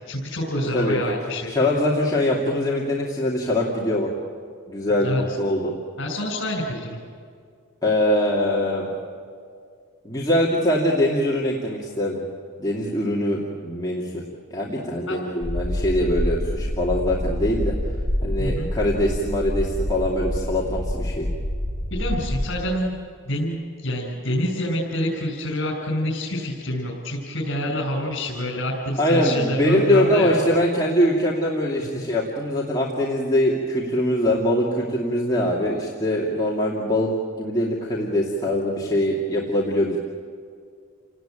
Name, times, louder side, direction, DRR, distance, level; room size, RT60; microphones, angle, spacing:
voice 1, 0.0-1.5 5.0-5.2 6.0-7.0 15.1-15.2 18.4-18.7 21.9-23.0 23.3-30.4 31.8-32.1, equal, 60° left, -3 dB, 5.6 m, -27 dB
voice 2, 1.5-4.1 4.7-5.7 7.8-8.9 10.0-12.2 12.6-14.2 14.5-17.7 18.2-21.3 29.0-37.1 37.4-40.0, left 1 dB, 20° left, -5 dB, 2.6 m, -22 dB
sound 1, 15.4-22.5, left 1 dB, 10° right, 4.7 m, -27 dB
30.0 x 18.5 x 9.1 m, 2.2 s
head